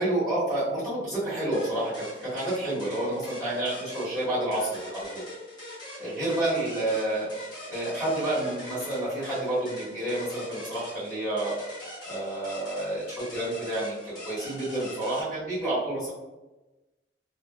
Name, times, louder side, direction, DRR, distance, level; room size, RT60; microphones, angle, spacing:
voice 1, 0.0-1.9 2.2-5.2 6.0-7.3 7.7-11.5 12.0-13.0 13.3-13.9 14.2-16.1, right 1 dB, ahead, -15 dB, 1.4 m, -29 dB
sound 1, 1.5-15.2, left 1 dB, 25° left, 0.9 m, -42 dB
2.6 x 2.3 x 2.3 m, 1.1 s
head